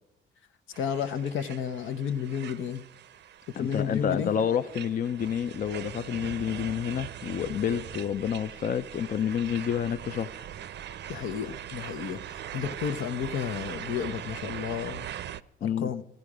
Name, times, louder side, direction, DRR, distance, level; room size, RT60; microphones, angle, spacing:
sound 1, 0.7-15.4, right 10 dB, 60° right, 0.6 m, -41 dB
voice 1, 0.8-2.8 3.6-4.3 11.1-15.1 15.6-16.0, left 8 dB, 80° left, 9 dB, 0.9 m, -32 dB
voice 2, 3.6-10.3 15.6-15.9, left 8 dB, 45° left, 10 dB, 0.5 m, -29 dB
15.5 x 13.5 x 4.9 m, 0.92 s
cardioid pair, 90°, 20 cm